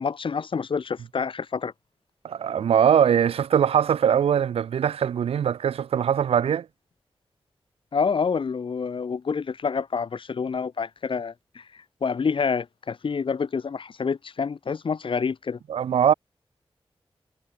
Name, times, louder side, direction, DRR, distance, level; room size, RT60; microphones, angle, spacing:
voice 1, 0.0-1.7 7.9-15.6, left 5 dB, 60° left, 0.8 m, -28 dB
voice 2, 2.2-6.7 15.7-16.1, right 8 dB, 90° right, 0.3 m, -21 dB
wide cardioid pair, 75°, 10 cm